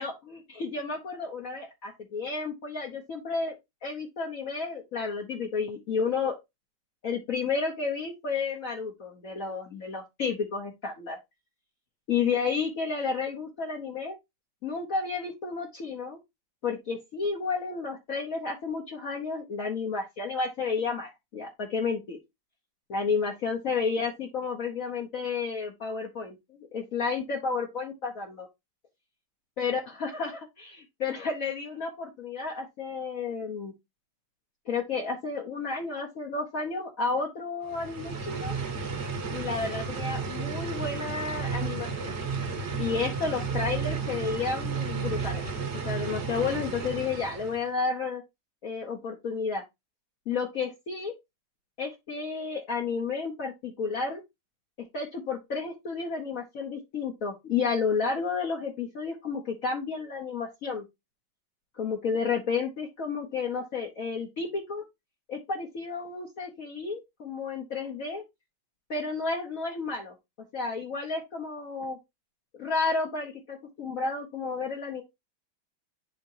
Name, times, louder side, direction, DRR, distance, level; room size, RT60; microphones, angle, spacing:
voice 1, 0.0-3.5 3.8-6.4 7.0-11.2 12.1-14.1 14.6-16.2 16.6-22.2 22.9-28.5 29.6-33.7 34.7-38.6 39.3-42.1 42.8-45.4 45.8-48.2 48.6-49.6 50.3-51.1 51.8-54.2 54.9-60.8 61.7-64.8 65.3-68.2 68.9-70.1 70.5-72.0 72.5-75.0, left 4 dB, 55° left, -2 dB, 1.4 m, -31 dB
sound 1, 37.6-47.7, right 5 dB, 45° right, 1.2 m, -33 dB
10.5 x 3.6 x 2.7 m, 0.21 s
omnidirectional pair, 1.9 m